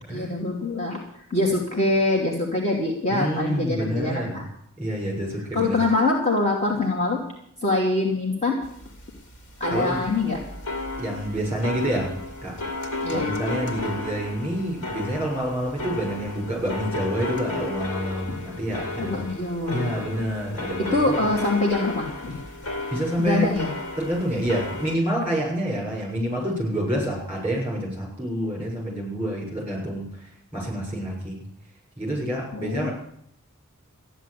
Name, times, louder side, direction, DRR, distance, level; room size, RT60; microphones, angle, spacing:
voice 1, 0.1-1.0 1.3-4.4 5.5-7.2 7.6-8.6 9.6-10.4 13.0-13.3 18.3-18.4 19.0-20.0 20.9-22.4 23.2-23.7 32.5-32.9, left 2 dB, 30° left, -2 dB, 2.7 m, -24 dB
voice 2, 3.1-4.4 4.8-5.8 9.7-10.0 11.0-12.1 12.4-12.5 13.1-19.2 19.7-21.2 22.9-23.5 24.0-30.1 30.5-31.4 32.0-32.9, equal, 10° right, -1 dB, 6.9 m, -27 dB
sound 1, 8.6-25.0, left 2 dB, 85° left, 2.3 m, -33 dB
14.0 x 10.5 x 8.3 m, 0.69 s
head